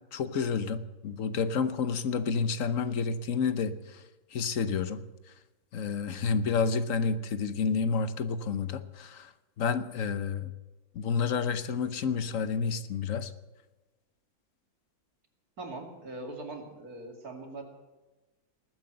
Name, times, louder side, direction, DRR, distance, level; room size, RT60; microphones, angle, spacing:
voice 1, 0.1-4.0 4.3-5.0 5.7-9.3 9.6-10.5 10.9-13.3, left 5 dB, 65° left, 12 dB, 1.2 m, -30 dB
voice 2, 15.6-17.6, right 2 dB, 85° right, 3 dB, 3.0 m, -41 dB
19.5 x 9.3 x 7.8 m, 1.1 s
omnidirectional pair, 1.5 m